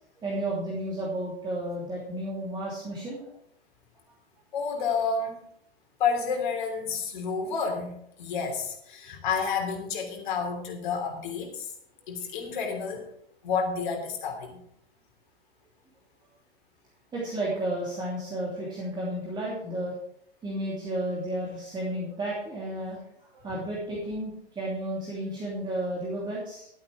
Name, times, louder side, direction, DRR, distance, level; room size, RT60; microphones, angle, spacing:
voice 1, 0.2-3.3 9.0-9.1 17.1-19.9 20.4-26.7, right 1 dB, 15° right, -5 dB, 2.9 m, -32 dB
voice 2, 4.5-5.4 6.0-11.7 12.1-13.1 13.4-14.6 23.5-23.6, left 5 dB, 50° left, 3 dB, 3.2 m, -30 dB
12.5 x 8.7 x 4.8 m, 0.71 s
figure-of-eight pair, 105°, 32 cm